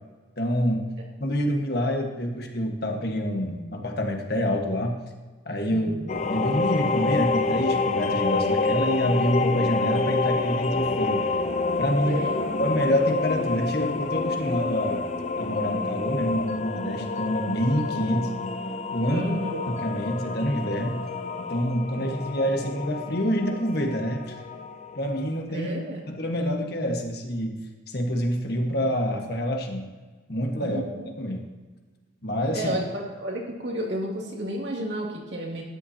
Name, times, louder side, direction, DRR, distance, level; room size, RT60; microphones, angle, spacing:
voice 1, 0.4-0.9 1.2-5.0 5.4-5.9 6.3-11.2 11.8-12.3 12.6-15.0 15.4-18.3 18.9-19.3 19.7-21.0 21.4-24.3 24.9-25.7 26.1-27.5 27.9-29.9 30.3-30.8 31.2-31.5 32.2-32.7, equal, 55° left, 3 dB, 1.5 m, -27 dB
voice 2, 5.7-6.0 12.1-12.6 19.1-19.7 25.5-26.0 30.6-31.1 32.5-35.6, equal, 65° right, -2 dB, 2.6 m, -32 dB
sound 1, 6.1-25.4, left 3 dB, 40° left, 0.6 m, -28 dB
13.0 x 10.0 x 2.9 m, 1.3 s
head